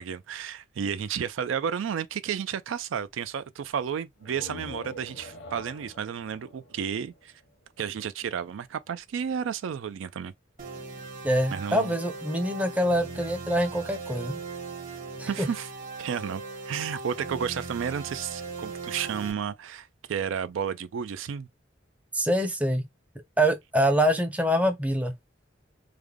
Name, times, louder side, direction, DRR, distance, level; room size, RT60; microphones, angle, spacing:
voice 1, 0.0-7.3 7.8-10.3 11.5-11.9 15.3-15.7 16.0-21.5, right 7 dB, 90° right, 0.4 m, -32 dB
sound 1, 4.2-7.8, left 2 dB, 70° left, 0.8 m, -45 dB
sound 2, 10.6-19.3, right 4 dB, 45° right, 0.9 m, -39 dB
voice 2, 11.2-14.4 15.2-15.5 22.1-22.8 23.4-25.1, equal, 10° right, 0.5 m, -25 dB
3.3 x 2.1 x 3.5 m
head